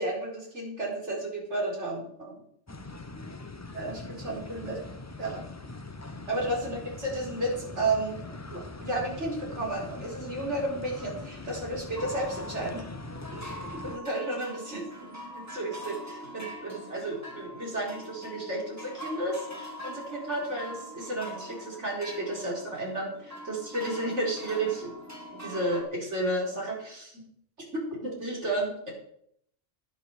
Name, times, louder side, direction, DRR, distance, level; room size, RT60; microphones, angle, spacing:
voice 1, 0.0-2.4 3.7-4.8 5.2-5.4 6.3-8.2 8.5-12.8 13.3-24.9 25.3-27.2 27.7-28.9, right 1 dB, 60° right, -2 dB, 4.8 m, -32 dB
sound 1, 2.7-14.0, left 2 dB, 20° left, 0.5 m, -42 dB
sound 2, 11.9-25.8, equal, 10° right, 2.6 m, -43 dB
10.5 x 10.5 x 6.6 m, 0.69 s
omnidirectional pair, 1.4 m